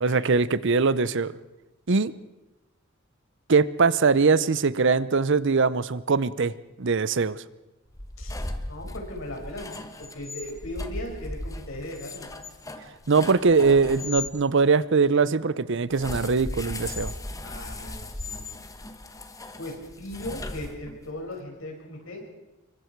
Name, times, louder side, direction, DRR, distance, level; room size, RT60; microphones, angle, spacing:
voice 1, 0.0-1.3 1.9-2.1 3.5-6.5 6.8-7.4 13.1-17.1, right 4 dB, 60° right, 17 dB, 0.7 m, -22 dB
sound 1, 7.9-14.3 15.9-21.1, left 2 dB, 15° left, 1.3 m, -37 dB
voice 2, 8.7-9.7 10.0-12.3 17.4-18.5 19.6-22.2, left 1 dB, 70° left, 0 dB, 6.1 m, -38 dB
26.0 x 23.5 x 4.6 m, 1.0 s
head